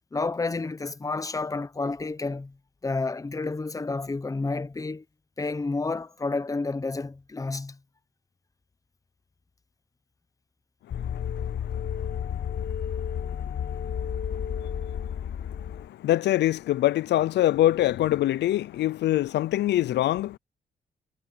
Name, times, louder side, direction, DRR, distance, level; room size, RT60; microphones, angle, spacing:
voice 1, 0.1-2.6 2.8-5.0 5.4-7.8, left 3 dB, 20° left, 0.9 m, -30 dB
voice 2, 10.9-20.4, left 14 dB, 80° left, 0.4 m, -27 dB
sound 1, 10.9-15.9, left 8 dB, 60° left, 1.7 m, -31 dB
cardioid pair, 120°, 17 cm